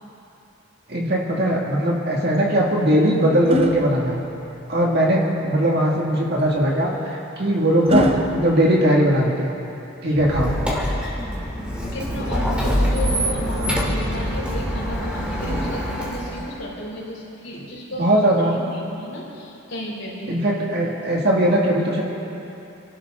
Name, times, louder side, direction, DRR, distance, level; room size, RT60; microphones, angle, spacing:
voice 1, 0.9-4.2 4.7-9.5 10.0-10.6 17.9-18.6 20.3-22.0, right 1 dB, 50° right, -2 dB, 2.2 m, -19 dB
sound 1, 2.3-4.8 6.4-9.6 11.4-12.5 14.5-16.3 17.5-17.8, left 2 dB, 30° right, 0.8 m, -30 dB
Squeak, 10.1-16.6, equal, 5° right, 2.3 m, -25 dB
voice 2, 11.8-18.1 18.4-20.3, equal, 60° left, -5 dB, 4.7 m, -33 dB
29.5 x 12.0 x 3.8 m, 2.9 s
head